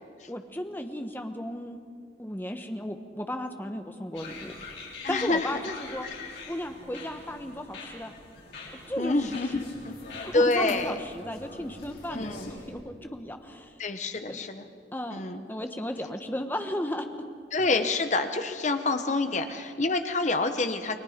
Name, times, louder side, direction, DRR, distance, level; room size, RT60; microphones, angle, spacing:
voice 1, 0.3-1.8 2.2-4.5 5.1-6.1 6.5-8.1 8.9-9.7 10.1-13.7 14.3-14.4 14.9-17.1 19.3-19.5, left 1 dB, 10° left, 6 dB, 1.1 m, -35 dB
sound 1, 4.1-12.7, left 3 dB, 80° left, 5.5 m, -44 dB
voice 2, 5.0-5.5 6.2-6.3 9.0-9.9 10.3-10.9 12.1-12.5 13.8-14.7 15.1-15.4 17.5-21.0, left 3 dB, 40° left, 8 dB, 1.1 m, -27 dB
29.5 x 20.5 x 5.2 m, 2.2 s
head